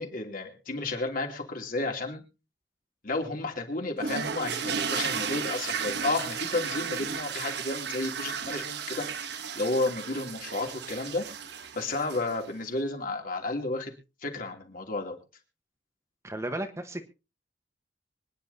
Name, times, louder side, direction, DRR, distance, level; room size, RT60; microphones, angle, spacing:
voice 1, 0.0-2.2 3.0-11.2 11.7-13.9 14.2-15.2, left 2 dB, 50° left, 3 dB, 2.9 m, -32 dB
sound 1, 4.0-12.5, right 6 dB, 65° right, 1.2 m, -34 dB
voice 2, 16.2-17.0, right 1 dB, 15° right, 6 dB, 1.2 m, -34 dB
24.5 x 10.5 x 2.8 m, 0.30 s
head